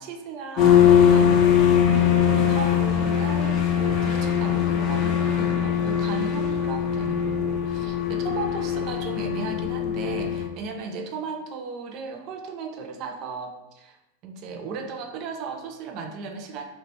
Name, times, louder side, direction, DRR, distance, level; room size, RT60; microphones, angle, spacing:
voice 1, 0.0-14.0 14.2-16.6, right 4 dB, 40° right, 4 dB, 0.4 m, -36 dB
sound 1, 0.6-10.5, left 8 dB, 40° left, 0.4 m, -21 dB
2.8 x 2.8 x 3.3 m, 0.92 s
figure-of-eight pair, 90°, 0 cm